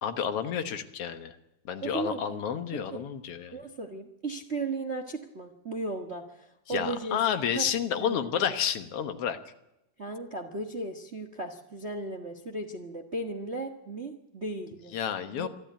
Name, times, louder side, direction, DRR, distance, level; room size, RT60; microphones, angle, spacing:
voice 1, 0.0-1.4 1.7-3.6 6.7-9.4 14.9-15.5, left 8 dB, 60° left, 9 dB, 2.0 m, -30 dB
voice 2, 1.8-2.4 2.9-3.0 3.5-7.2 7.5-7.7 8.0-8.6 10.0-14.9 15.3-15.5, right 2 dB, 40° right, 6 dB, 0.9 m, -36 dB
24.0 x 13.0 x 9.3 m, 0.89 s
omnidirectional pair, 3.4 m